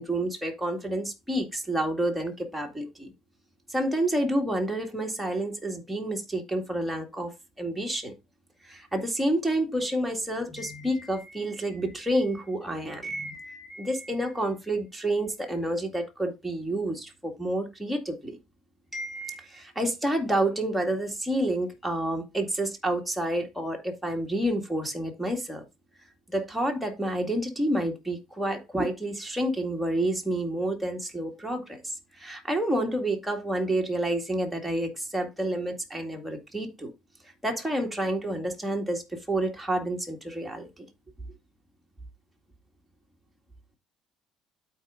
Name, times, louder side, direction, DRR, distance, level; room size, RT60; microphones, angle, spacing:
voice 1, 0.0-3.1 3.7-8.1 8.6-18.4 18.9-25.6 26.3-36.9 37.4-40.9, right 1 dB, ahead, 2.0 m, -29 dB
12.5 x 4.6 x 2.5 m
supercardioid pair, 95°, 0 cm